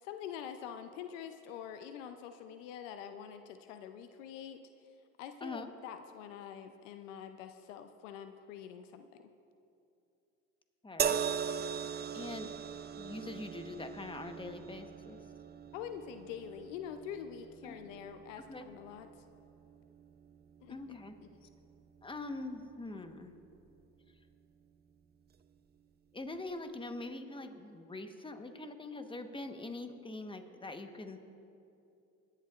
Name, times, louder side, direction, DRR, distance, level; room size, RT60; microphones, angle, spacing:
voice 1, 0.0-4.6 5.2-9.3 15.7-19.1 20.6-21.5, left 8 dB, 80° left, 8 dB, 0.7 m, -45 dB
voice 2, 5.4-5.7 10.8-11.2 12.1-12.5 13.0-15.2 17.6-17.8 18.5-18.6 20.7-21.1 22.0-23.3 26.1-31.2, left 2 dB, 15° left, 7 dB, 1.2 m, -43 dB
sound 1, 11.0-24.3 25.3-25.5, right 7 dB, 25° right, 0.6 m, -41 dB
25.5 x 11.0 x 2.5 m, 2.7 s
hypercardioid pair, 60°, 37 cm